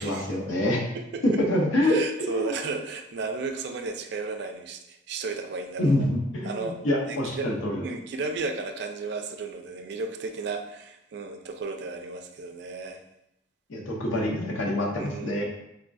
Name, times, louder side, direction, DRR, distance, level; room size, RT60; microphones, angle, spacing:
voice 1, 0.0-0.8 1.5-2.0 2.3-2.6 5.8-7.8 13.7-15.4, left 1 dB, 85° left, -1 dB, 0.7 m, -26 dB
voice 2, 0.9-1.4 1.8-6.1 6.4-6.8 7.1-7.5 7.8-13.0 14.9-15.4, right 3 dB, 55° right, 5 dB, 0.3 m, -34 dB
3.5 x 2.3 x 2.5 m, 0.83 s
head